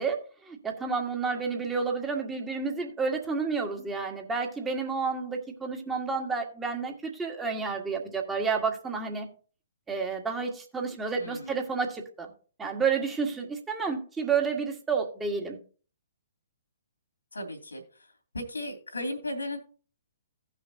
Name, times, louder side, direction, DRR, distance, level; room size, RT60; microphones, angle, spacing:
voice 1, 0.0-9.3 9.9-12.3 12.6-15.6, right 5 dB, 10° right, 2 dB, 1.7 m, -30 dB
voice 2, 11.2-11.5 17.3-17.8 18.3-19.6, left 1 dB, 85° left, 4 dB, 2.6 m, -35 dB
17.0 x 5.9 x 2.8 m, 0.39 s
figure-of-eight pair, 125°, 0 cm